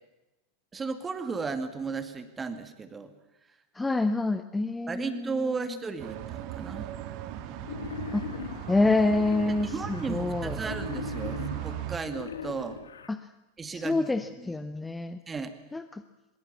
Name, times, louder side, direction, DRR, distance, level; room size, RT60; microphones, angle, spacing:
voice 1, 0.7-3.1 4.9-7.0 9.7-12.8 13.6-14.1 14.4-14.5 15.3-15.5, right 4 dB, 15° right, 10 dB, 2.2 m, -35 dB
voice 2, 3.7-5.7 8.1-8.2 8.7-10.6 13.1-13.3 13.7-15.2 15.7-16.0, left 2 dB, 10° left, 11 dB, 0.9 m, -27 dB
sound 1, 6.0-12.0, right 12 dB, 40° right, 1.8 m, -37 dB
Wild animals, 7.6-10.1 10.6-13.1, left 7 dB, 70° left, 1.7 m, -40 dB
23.5 x 22.0 x 7.1 m, 1.0 s
figure-of-eight pair, 90°, 0 cm